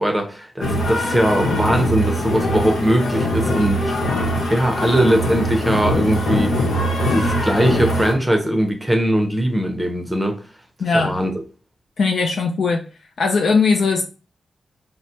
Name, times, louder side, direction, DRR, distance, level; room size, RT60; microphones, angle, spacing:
voice 1, 0.0-4.0 4.5-6.6 7.1-10.4 10.9-11.3, right 1 dB, 10° right, 0.7 m, -20 dB
sound 1, 0.6-8.1, equal, 85° left, 0.8 m, -22 dB
voice 2, 10.8-11.1 12.0-12.8 13.2-14.0, left 4 dB, 65° left, 0.5 m, -18 dB
4.7 x 2.1 x 2.7 m
wide cardioid pair, 115°, 0 cm